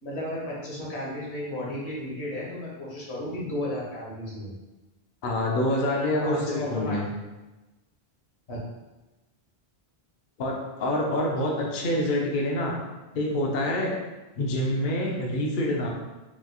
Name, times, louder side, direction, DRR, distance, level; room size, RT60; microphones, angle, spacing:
voice 1, 0.0-4.5 6.2-7.1 8.5-8.6, left 1 dB, 90° left, -5 dB, 1.3 m, -33 dB
voice 2, 5.2-7.1 10.4-12.8 13.1-13.9 14.4-15.9, left 1 dB, 60° left, -1 dB, 0.7 m, -26 dB
3.7 x 3.1 x 2.3 m, 1.1 s
omnidirectional pair, 1.1 m